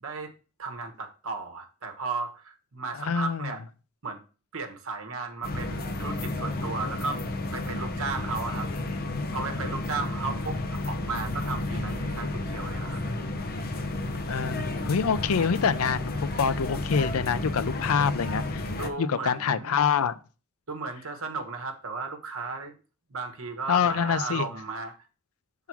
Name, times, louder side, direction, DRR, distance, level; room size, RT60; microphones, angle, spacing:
voice 1, 0.0-0.3 0.6-3.6 4.0-4.2 4.5-7.2 7.5-8.7 9.3-13.0 18.8-19.8 20.7-22.7 23.1-25.0, right 4 dB, 65° right, 1.1 m, -35 dB
voice 2, 2.9-3.5 8.5-9.4 14.3-18.7 19.0-20.2 23.7-24.5, left 6 dB, 80° left, 0.5 m, -26 dB
sound 1, 5.4-18.9, left 2 dB, 45° left, 0.7 m, -32 dB
5.8 x 3.7 x 6.0 m
head